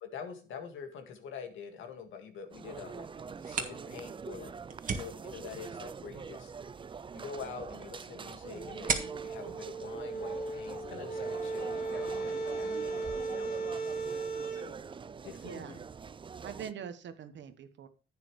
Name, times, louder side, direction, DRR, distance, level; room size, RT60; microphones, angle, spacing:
voice 1, 0.0-3.1 3.5-4.5 4.9-6.5 7.1-14.2 15.2-15.8, left 6 dB, 80° left, 5 dB, 2.0 m, -46 dB
sound 1, 2.5-16.7, right 6 dB, 25° right, 0.4 m, -44 dB
sound 2, 3.2-10.8, right 5 dB, 40° right, 1.7 m, -40 dB
sound 3, 8.6-14.7, right 3 dB, 45° left, 2.1 m, -36 dB
voice 2, 15.4-15.8 16.4-17.9, right 8 dB, 65° right, 10 dB, 1.3 m, -43 dB
10.5 x 8.9 x 3.2 m, 0.36 s
cardioid pair, 90°, 20 cm